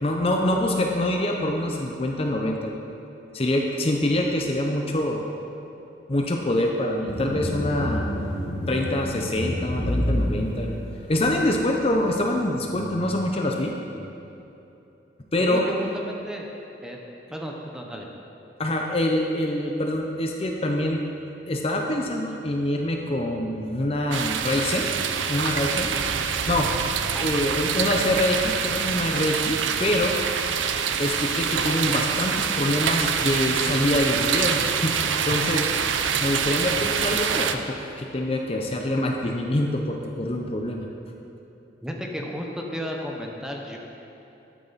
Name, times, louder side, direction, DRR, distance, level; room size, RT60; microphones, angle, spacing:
voice 1, 0.0-2.7 3.3-5.2 6.1-8.1 8.7-10.7 11.1-13.7 15.3-15.6 18.6-21.0 21.5-24.9 25.3-26.0 26.5-26.7 27.2-30.1 31.0-35.0 35.3-35.7 36.2-40.9, left 1 dB, 30° left, 1 dB, 0.7 m, -25 dB
sound 1, 7.1-11.6, equal, 65° left, 1.8 m, -29 dB
voice 2, 15.4-16.5 16.8-17.0 17.3-18.1 27.1-27.5 41.8-43.8, equal, 5° right, 0 dB, 0.9 m, -33 dB
sound 2, 24.1-37.6, right 7 dB, 90° right, 0.6 m, -25 dB
12.0 x 8.8 x 4.1 m, 2.9 s
head